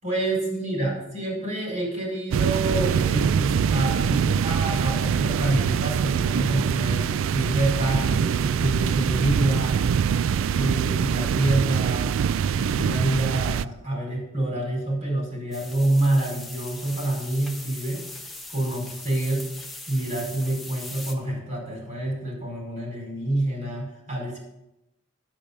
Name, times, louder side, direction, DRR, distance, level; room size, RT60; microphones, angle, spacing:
voice 1, 0.0-9.8 10.5-12.1 12.5-18.0 18.5-19.5 19.9-24.4, right 1 dB, 40° right, -2 dB, 4.7 m, -27 dB
sound 1, 2.3-13.6, right 7 dB, 85° right, 0.3 m, -24 dB
sound 2, 15.5-21.1, left 2 dB, ahead, 1.1 m, -40 dB
10.5 x 8.5 x 5.2 m, 0.88 s
head